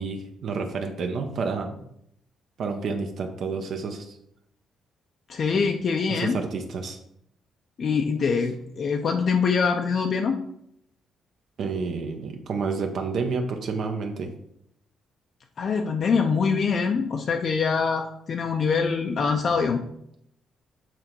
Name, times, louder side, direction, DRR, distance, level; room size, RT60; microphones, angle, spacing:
voice 1, 0.0-1.8 2.6-4.2 6.1-7.0 11.6-14.3, right 4 dB, 60° right, 4 dB, 0.8 m, -29 dB
voice 2, 5.3-6.4 7.8-10.4 15.6-19.8, left 5 dB, 45° left, 3 dB, 0.5 m, -24 dB
7.5 x 3.9 x 4.5 m, 0.75 s
cardioid pair, 140°, 0 cm